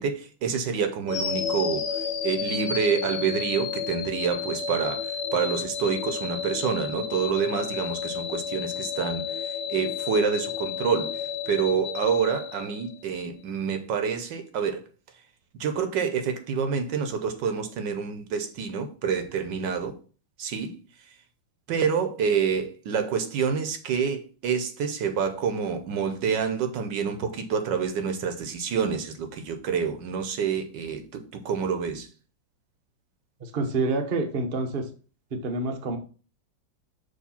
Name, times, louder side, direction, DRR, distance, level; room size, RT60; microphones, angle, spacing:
voice 1, 0.0-1.8 2.2-14.8 15.5-20.0 20.4-20.7 21.7-32.1, right 6 dB, 70° right, 1.4 m, -27 dB
sound 1, 1.1-13.2, left 7 dB, 70° left, 0.6 m, -32 dB
voice 2, 33.4-34.9 35.3-36.0, right 3 dB, 40° right, 0.8 m, -27 dB
6.5 x 3.1 x 5.6 m
omnidirectional pair, 2.2 m